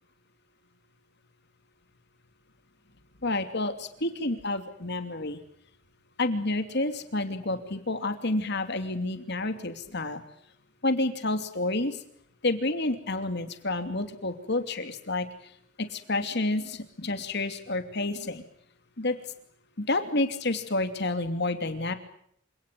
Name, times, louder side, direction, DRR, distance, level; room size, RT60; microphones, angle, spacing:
voice 1, 3.2-5.4 6.2-10.2 10.8-12.0 12.4-15.3 15.8-18.4 19.0-19.2 19.8-21.9, left 2 dB, 55° left, 8 dB, 2.8 m, -29 dB
27.5 x 18.0 x 9.3 m, 0.67 s
head